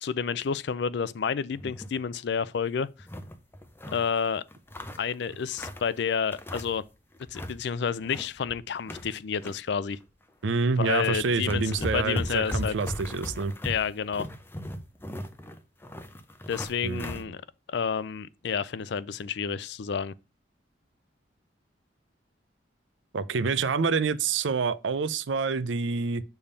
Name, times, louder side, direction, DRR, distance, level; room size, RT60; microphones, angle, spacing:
voice 1, 0.0-2.9 3.9-4.4 5.0-6.8 7.3-10.0 10.7-12.8 13.6-14.3 16.5-17.4 17.7-20.1, left 6 dB, 65° left, 0.4 m, -30 dB
sound 1, 1.6-2.0 2.4-2.5 2.8-4.1 4.5-5.9 6.3-6.9 7.2-7.6 7.9-9.6 9.9-10.1 10.8-10.9 11.2-17.2, left 1 dB, 10° left, 0.6 m, -37 dB
voice 2, 10.4-13.5 16.8-17.2 23.1-26.2, right 4 dB, 85° right, 0.5 m, -27 dB
6.9 x 3.6 x 5.4 m
head